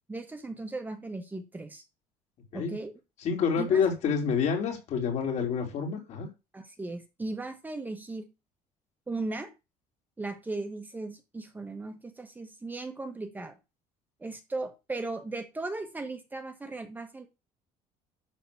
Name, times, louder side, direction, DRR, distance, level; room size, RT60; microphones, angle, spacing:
voice 1, 0.1-1.8 2.5-2.9 3.6-3.8 5.4-5.5 6.5-8.3 9.1-9.5 10.2-13.6 14.2-17.3, right 2 dB, 10° right, 6 dB, 1.3 m, -37 dB
voice 2, 3.2-6.3, left 6 dB, 55° left, 2 dB, 3.6 m, -28 dB
12.0 x 4.0 x 7.0 m, 0.27 s
cardioid pair, 145°, 14 cm